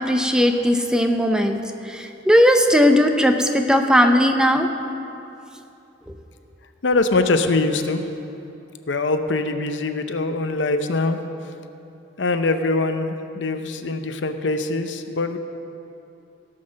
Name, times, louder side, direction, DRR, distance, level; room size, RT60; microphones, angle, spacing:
voice 1, 0.0-4.7, equal, 5° right, 5 dB, 0.6 m, -18 dB
voice 2, 6.8-8.0 8.9-11.2 12.2-15.4, left 3 dB, 75° left, 8 dB, 0.7 m, -23 dB
17.0 x 5.8 x 6.4 m, 2.8 s
head